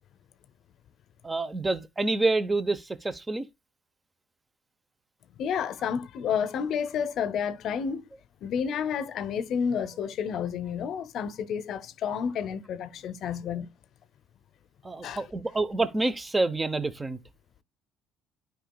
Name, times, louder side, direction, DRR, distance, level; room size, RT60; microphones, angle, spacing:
voice 1, 1.2-3.5 14.8-17.2, right 2 dB, 15° right, 0.8 m, -27 dB
voice 2, 5.4-8.1 8.4-13.7 15.0-15.2, left 7 dB, 55° left, 0.7 m, -30 dB
12.0 x 5.1 x 2.2 m
cardioid pair, 125°, 0 cm